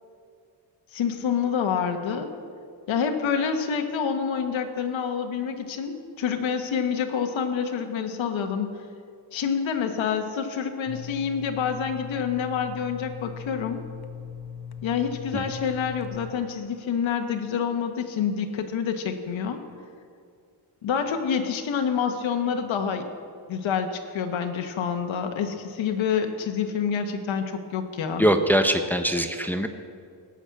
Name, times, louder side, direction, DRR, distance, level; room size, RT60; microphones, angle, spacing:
voice 1, 0.9-2.3 2.9-8.7 9.3-13.8 14.8-19.6 20.8-23.1 23.5-28.3, left 7 dB, 75° left, 5 dB, 1.3 m, -27 dB
sound 1, 10.9-16.3, left 7 dB, 50° left, 1.0 m, -39 dB
voice 2, 28.2-29.7, equal, 5° left, 7 dB, 0.8 m, -22 dB
18.5 x 6.2 x 8.4 m, 2.3 s
cardioid pair, 105°, 47 cm